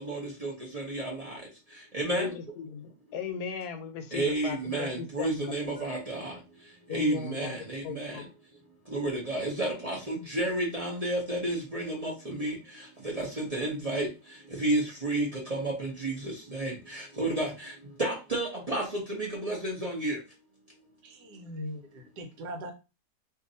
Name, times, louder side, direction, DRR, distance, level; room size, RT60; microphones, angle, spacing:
voice 1, 0.0-1.4 1.9-2.3 4.1-6.3 6.9-8.2 8.9-12.6 13.1-14.1 14.6-17.7 18.0-20.2, right 1 dB, 35° right, -3 dB, 0.6 m, -31 dB
voice 2, 2.1-5.5 6.9-7.6 7.8-8.3, left 7 dB, 75° left, 7 dB, 1.1 m, -37 dB
voice 3, 21.0-22.7, equal, 75° right, 6 dB, 1.3 m, -40 dB
2.7 x 2.5 x 3.8 m, 0.29 s
omnidirectional pair, 1.8 m